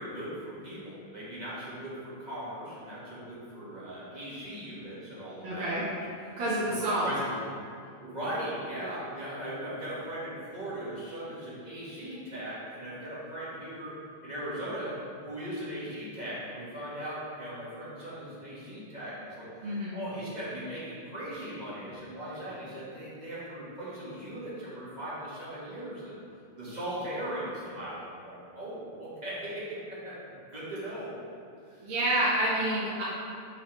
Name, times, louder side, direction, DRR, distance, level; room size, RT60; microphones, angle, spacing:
voice 1, 0.0-6.0 6.3-7.4 8.0-14.0 14.2-26.1 26.6-31.1 31.7-31.9, right 1 dB, 20° right, -10 dB, 1.5 m, -39 dB
voice 2, 5.4-5.9 6.4-7.1 19.6-20.0 31.8-33.0, right 1 dB, 65° right, -9 dB, 1.9 m, -28 dB
6.8 x 4.0 x 4.0 m, 2.3 s
omnidirectional pair, 2.4 m